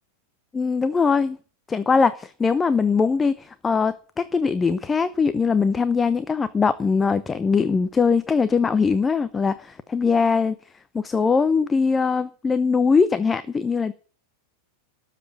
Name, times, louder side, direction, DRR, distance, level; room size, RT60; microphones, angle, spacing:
voice 1, 0.5-1.4 1.7-10.6 10.9-13.9, left 5 dB, 15° left, 0.7 m, -21 dB
13.0 x 7.6 x 9.2 m
figure-of-eight pair, 90°, 0 cm